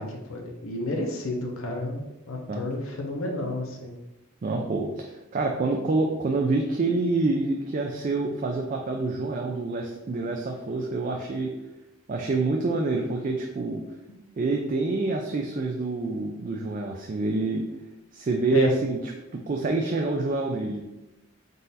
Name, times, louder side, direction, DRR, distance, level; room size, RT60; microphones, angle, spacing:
voice 1, 0.0-4.0 18.5-18.7, left 2 dB, 75° left, 1 dB, 0.8 m, -31 dB
voice 2, 4.4-11.5 12.1-13.8 14.4-17.6 18.1-20.8, right 3 dB, 40° right, 2 dB, 0.3 m, -27 dB
3.9 x 2.5 x 4.0 m, 0.98 s
head